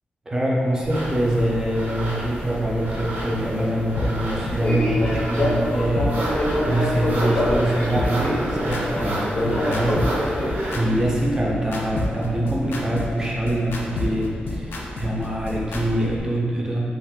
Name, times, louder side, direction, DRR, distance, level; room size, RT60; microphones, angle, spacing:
voice 1, 0.3-16.8, right 1 dB, 20° right, -3 dB, 0.5 m, -24 dB
Fixed-wing aircraft airplane, 0.8-16.2, left 1 dB, 30° left, 0.5 m, -29 dB
sound 1, 0.9-10.8, right 1 dB, 65° right, 0.6 m, -31 dB
sound 2, 4.0-4.1 4.5-4.6 5.0-5.1 5.5-5.6 6.0-6.1 6.5-6.6 7.0-7.1 7.5-7.6 8.0-15.8, left 3 dB, 85° left, 0.4 m, -29 dB
2.5 x 2.3 x 3.4 m, 2.2 s
wide cardioid pair, 125°, 4 cm